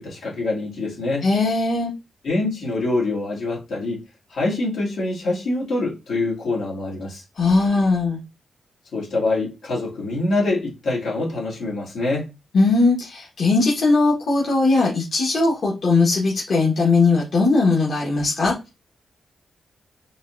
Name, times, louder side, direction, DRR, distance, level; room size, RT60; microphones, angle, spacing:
voice 1, 0.0-1.3 2.2-4.0 4.3-7.2 8.9-12.3, left 2 dB, 85° left, 1.8 m, -25 dB
voice 2, 1.2-1.9 7.4-8.2 12.5-18.5, left 3 dB, 65° left, 1.3 m, -19 dB
3.9 x 2.9 x 2.5 m
cardioid pair, 90°, 0 cm